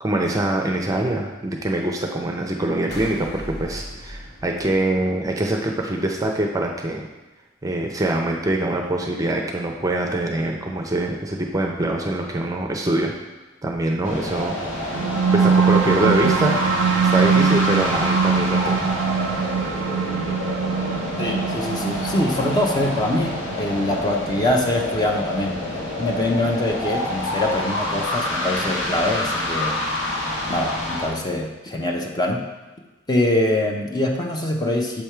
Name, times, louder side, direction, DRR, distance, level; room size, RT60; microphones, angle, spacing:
voice 1, 0.0-7.0 7.6-13.1 13.6-14.6 14.8-15.0 15.3-19.0, right 1 dB, 20° right, 1 dB, 0.6 m, -24 dB
sound 1, 2.9-5.5, left 1 dB, 60° left, 1.1 m, -37 dB
sound 2, 14.0-31.1, left 1 dB, 85° left, 1.4 m, -27 dB
sound 3, 14.8-25.8, right 6 dB, 80° right, 0.4 m, -22 dB
voice 2, 21.2-25.6 26.0-29.7 30.5-32.4 33.1-35.0, left 1 dB, 20° left, 1 dB, 0.7 m, -23 dB
7.3 x 3.5 x 4.4 m, 1.1 s
head